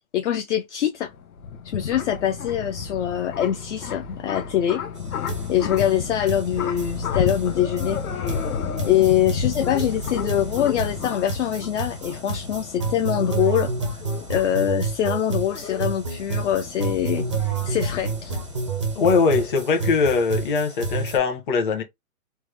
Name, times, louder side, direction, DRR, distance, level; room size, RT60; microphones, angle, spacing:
voice 1, 0.1-1.1 1.6-4.8 5.5-8.0 8.8-13.7 14.3-17.3 17.6-18.4, left 11 dB, 55° left, 0.5 m, -23 dB
sound 1, 1.0-19.2, left 6 dB, 80° left, 0.9 m, -32 dB
sound 2, 5.0-5.1 5.3-21.2, right 4 dB, 25° right, 0.4 m, -30 dB
voice 2, 18.9-21.8, left 5 dB, 35° left, 0.9 m, -21 dB
3.4 x 2.1 x 3.3 m
hypercardioid pair, 165°, 43 cm